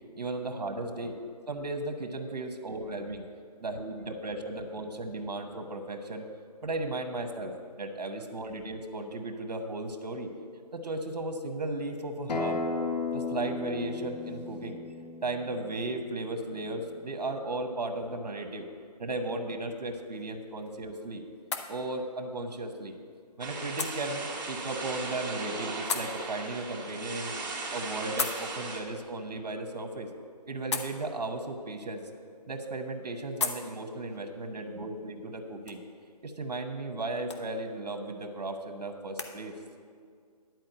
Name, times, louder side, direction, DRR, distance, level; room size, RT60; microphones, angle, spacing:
voice 1, 0.2-1.2 1.5-3.2 3.6-6.2 6.6-10.3 10.7-12.6 13.1-14.8 15.2-18.7 19.0-21.2 21.7-22.9 23.4-27.3 27.7-30.1 30.5-32.0 32.5-35.8 36.2-39.5, right 2 dB, 75° right, 5 dB, 1.1 m, -35 dB
Acoustic guitar, 12.3-17.5, left 4 dB, 80° left, 1.1 m, -36 dB
sound 1, 19.8-39.3, left 5 dB, 45° left, 0.7 m, -42 dB
sound 2, 23.4-28.8, right 3 dB, 30° right, 1.6 m, -37 dB
10.5 x 4.6 x 7.9 m, 2.1 s
hypercardioid pair, 165°, 21 cm